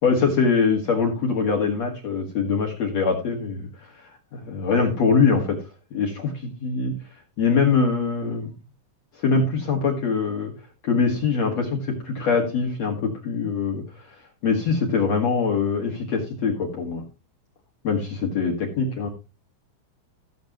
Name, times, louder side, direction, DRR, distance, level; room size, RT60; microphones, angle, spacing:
voice 1, 0.0-4.0 4.3-5.6 5.9-6.9 7.4-8.5 9.2-10.5 10.8-14.2 14.4-17.0 17.8-19.1, left 5 dB, 55° left, 1 dB, 2.0 m, -23 dB
16.5 x 7.4 x 3.0 m, 0.30 s
omnidirectional pair, 5.5 m